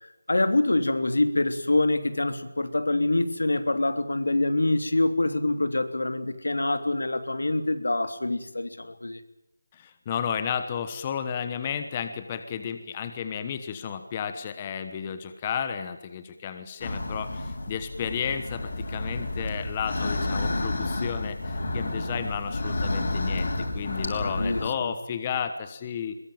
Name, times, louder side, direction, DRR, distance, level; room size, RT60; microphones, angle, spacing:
voice 1, 0.0-9.2 24.2-24.9, left 2 dB, 85° left, 8 dB, 3.2 m, -25 dB
voice 2, 9.7-26.2, left 7 dB, 15° left, 9 dB, 1.2 m, -32 dB
sound 1, 16.8-24.7, left 2 dB, 45° left, 5.8 m, -30 dB
22.0 x 21.5 x 9.0 m, 0.86 s
figure-of-eight pair, 175°, 0 cm